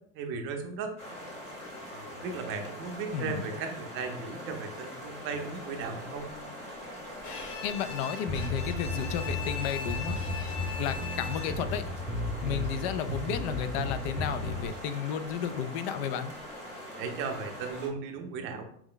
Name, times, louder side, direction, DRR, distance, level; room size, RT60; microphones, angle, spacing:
voice 1, 0.1-0.9 1.9-6.3 17.0-18.6, right 5 dB, 40° right, 4 dB, 0.5 m, -36 dB
sound 1, 1.0-17.9, left 1 dB, 20° left, 0.9 m, -43 dB
voice 2, 3.1-3.4 7.6-10.2 10.8-11.8 12.4-16.3, left 8 dB, 80° left, 12 dB, 0.5 m, -33 dB
Bowed string instrument, 7.2-11.8, left 6 dB, 60° left, 0.8 m, -40 dB
sound 2, 8.3-14.7, left 1 dB, 5° right, 0.7 m, -34 dB
4.6 x 2.1 x 3.8 m, 0.67 s
cardioid pair, 175°, 32 cm